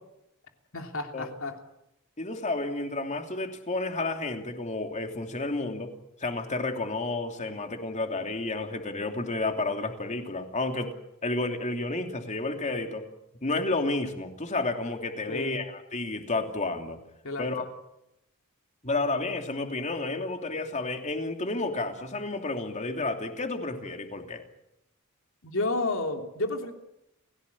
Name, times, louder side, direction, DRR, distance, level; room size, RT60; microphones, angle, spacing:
voice 1, 0.7-1.6 15.3-15.6 17.2-17.7 25.4-26.7, left 2 dB, 65° left, 4 dB, 3.3 m, -31 dB
voice 2, 2.2-5.9 6.2-10.9 11.2-13.0 13.4-17.0 17.4-17.6 18.8-24.4, left 2 dB, 35° left, 5 dB, 3.0 m, -31 dB
30.0 x 16.5 x 8.6 m, 0.87 s
head